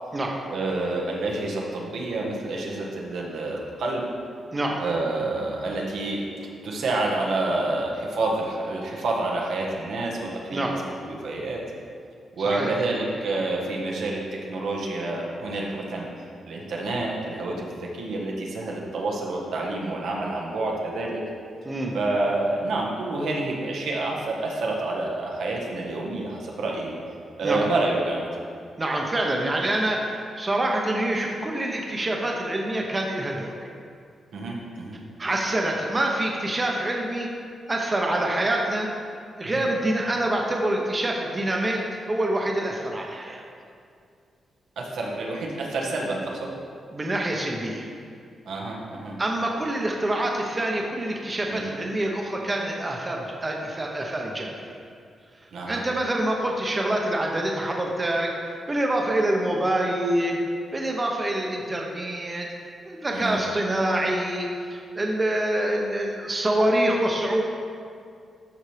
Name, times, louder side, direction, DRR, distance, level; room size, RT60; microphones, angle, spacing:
voice 1, 0.5-4.0 4.8-10.8 11.1-11.6 12.4-14.2 14.5-21.2 21.9-26.9 27.4-28.2 34.3-35.0 39.4-39.7 44.8-46.5 48.4-49.2 51.5-51.6 55.5-55.8 63.1-63.4, right 2 dB, 85° right, -2 dB, 1.3 m, -28 dB
voice 2, 28.8-33.5 35.2-37.3 37.7-38.9 39.4-43.4 46.9-47.9 49.2-54.5 55.7-58.3 58.7-60.4 60.7-62.4 62.8-64.5 64.9-67.4, right 1 dB, 25° right, 0 dB, 0.8 m, -26 dB
12.5 x 4.4 x 3.3 m, 2.3 s
cardioid pair, 110°, 0 cm